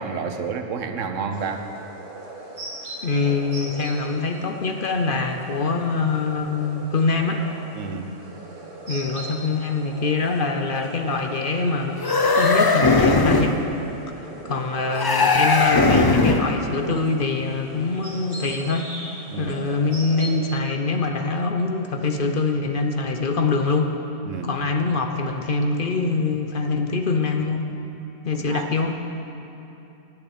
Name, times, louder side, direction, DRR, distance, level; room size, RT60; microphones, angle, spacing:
voice 1, 0.0-1.7 7.7-8.1 14.5-14.6 19.3-19.6 24.2-24.5 28.5-28.7, right 5 dB, 80° right, 6 dB, 1.2 m, -30 dB
sound 1, 1.3-20.4, right 1 dB, 45° right, 1.9 m, -40 dB
voice 2, 3.0-7.4 8.9-13.6 14.5-18.9 19.4-23.9 24.4-27.6 28.2-29.0, left 3 dB, 50° left, 4 dB, 0.8 m, -24 dB
sound 2, 12.0-13.6 15.0-16.6, left 3 dB, 35° left, 0.3 m, -18 dB
10.0 x 8.1 x 8.8 m, 3.0 s
omnidirectional pair, 1.3 m